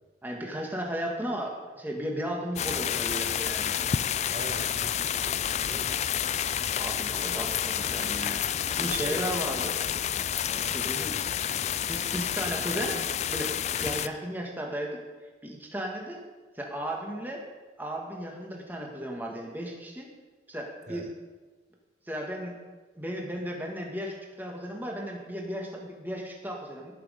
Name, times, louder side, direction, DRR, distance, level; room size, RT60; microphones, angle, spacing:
voice 1, 0.2-3.8 6.8-9.8 10.7-11.2 11.8-15.0 15.4-16.2 16.5-17.5 17.8-20.1 20.5-21.1 22.1-22.5 22.9-26.9, right 1 dB, 10° right, 0 dB, 1.6 m, -35 dB
sound 1, 2.6-14.1, left 9 dB, 35° left, 0.3 m, -29 dB
voice 2, 4.3-6.0 9.0-9.6 10.5-10.7 20.9-21.1, right 1 dB, 40° right, 5 dB, 0.8 m, -42 dB
17.5 x 6.2 x 5.1 m, 1.3 s
head